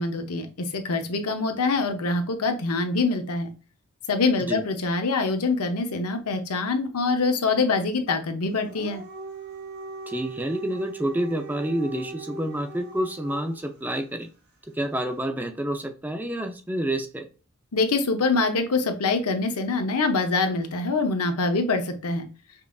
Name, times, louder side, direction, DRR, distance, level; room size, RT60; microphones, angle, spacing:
voice 1, 0.0-3.5 4.1-9.0 17.7-22.3, left 3 dB, 85° left, 6 dB, 0.7 m, -25 dB
Dog, 8.6-13.7, right 3 dB, 45° right, 1.0 m, -40 dB
voice 2, 10.1-14.3 14.7-17.3, right 1 dB, 10° right, 5 dB, 0.5 m, -28 dB
5.3 x 2.5 x 2.3 m, 0.34 s
head